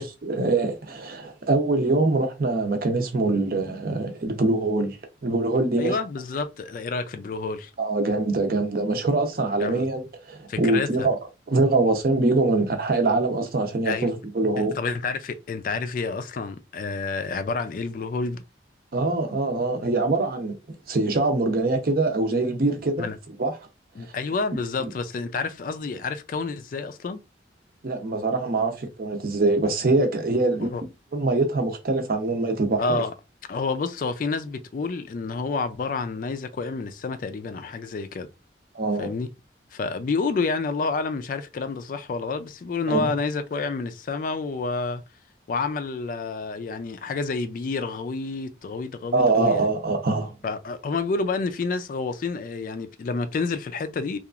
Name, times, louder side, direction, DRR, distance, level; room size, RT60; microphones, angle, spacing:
voice 1, 0.0-5.0 5.2-6.0 7.8-11.2 11.5-14.8 18.9-20.6 20.9-23.1 23.4-23.6 24.8-24.9 27.8-30.7 31.1-33.0 38.7-39.1 42.9-43.1 49.1-50.3, right 2 dB, 50° right, 0.6 m, -23 dB
voice 2, 5.8-7.7 9.6-9.9 10.5-11.1 13.8-14.2 14.6-18.4 23.0-23.2 24.0-27.2 30.4-30.8 32.8-33.1 33.5-38.3 39.0-39.3 39.7-45.0 45.5-49.7 50.4-54.2, left 4 dB, 45° left, 0.3 m, -29 dB
2.9 x 2.4 x 2.3 m
head